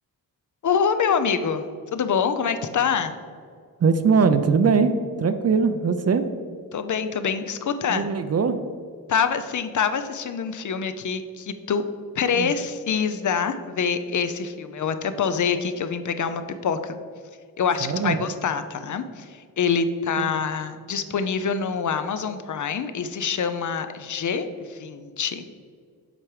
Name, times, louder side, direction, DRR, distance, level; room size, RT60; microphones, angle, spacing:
voice 1, 0.6-1.6 1.9-3.1 6.7-8.1 9.1-11.8 12.2-17.0 17.6-25.5, left 6 dB, 55° left, 10 dB, 0.5 m, -25 dB
voice 2, 3.8-6.2 7.9-8.6 12.3-12.5 17.8-18.2 20.2-20.3, right 5 dB, 45° right, 9 dB, 0.5 m, -21 dB
7.5 x 4.9 x 4.8 m, 2.1 s
wide cardioid pair, 165°, 35 cm